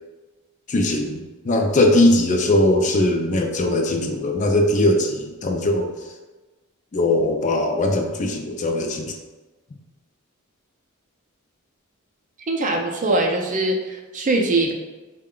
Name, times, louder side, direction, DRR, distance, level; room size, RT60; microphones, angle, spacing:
voice 1, 0.7-5.9 6.9-9.1, left 1 dB, 35° left, 3 dB, 0.4 m, -20 dB
voice 2, 12.5-14.7, right 2 dB, 35° right, 2 dB, 0.5 m, -22 dB
4.6 x 2.2 x 3.7 m, 1.2 s
head